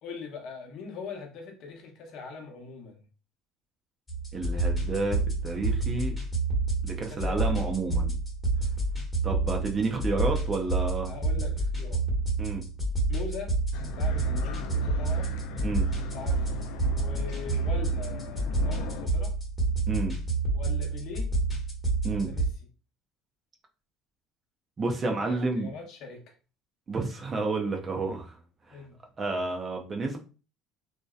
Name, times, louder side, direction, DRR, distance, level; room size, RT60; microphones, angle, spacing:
voice 1, 0.0-3.0 6.9-7.5 11.0-12.0 13.1-13.5 13.8-15.4 16.0-16.5 16.8-19.3 20.5-21.3 22.1-22.5 25.0-26.3 28.7-29.0, left 5 dB, 60° left, 2 dB, 0.8 m, -41 dB
sound 1, 4.1-22.5, right 2 dB, 15° left, 1.0 m, -29 dB
voice 2, 4.3-6.2 6.8-8.2 9.2-11.1 12.4-12.6 15.6-15.9 19.9-20.2 22.0-22.3 24.8-25.7 26.9-28.4 29.2-30.2, right 3 dB, 30° right, 2 dB, 0.4 m, -30 dB
sound 2, 13.7-19.1, left 5 dB, 75° left, 0.3 m, -40 dB
2.6 x 2.1 x 2.3 m, 0.35 s
cardioid pair, 115°, 0 cm